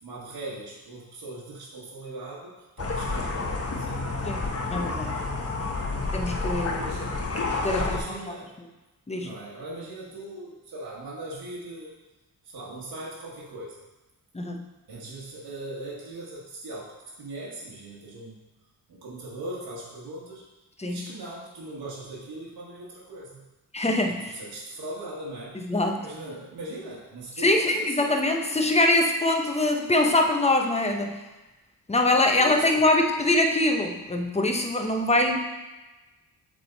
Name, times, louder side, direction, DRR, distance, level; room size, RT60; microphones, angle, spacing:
voice 1, 0.0-4.1 6.6-7.1 7.6-8.5 9.2-11.9 12.4-13.8 14.9-18.4 18.9-20.4 20.9-23.4 24.1-25.6 26.0-28.1 32.4-32.8, right 2 dB, 65° right, -6 dB, 1.6 m, -39 dB
sound 1, 2.8-8.0, left 3 dB, 40° left, 1.1 m, -29 dB
voice 2, 4.2-5.2 6.1-6.8 7.6-8.0 9.1-9.3 14.3-14.7 20.8-21.1 23.7-24.4 25.5-26.0 27.4-31.2 31.9-35.4, left 2 dB, 15° left, 3 dB, 0.9 m, -23 dB
7.8 x 3.7 x 4.0 m, 1.1 s
cardioid pair, 65°, 38 cm